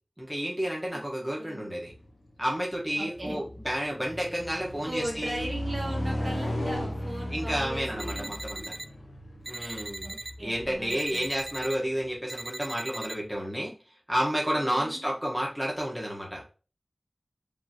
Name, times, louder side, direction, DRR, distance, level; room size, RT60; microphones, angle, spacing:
voice 1, 0.2-1.9 2.4-5.5 7.3-8.7 9.5-10.1 10.4-13.7 14.1-16.5, equal, ahead, -3 dB, 1.3 m, -31 dB
sound 1, 1.9-2.1 2.6-12.4, left 1 dB, 90° left, 0.9 m, -36 dB
voice 2, 3.0-3.4 4.8-8.3 8.6-8.7 9.6-11.2 14.6-15.0, right 1 dB, 65° right, -2 dB, 1.8 m, -38 dB
sound 2, 8.0-8.9 9.4-10.3 10.9-11.8 12.3-13.1, right 2 dB, 50° right, 0.4 m, -39 dB
5.2 x 3.0 x 2.9 m, 0.36 s
wide cardioid pair, 60°, 0 cm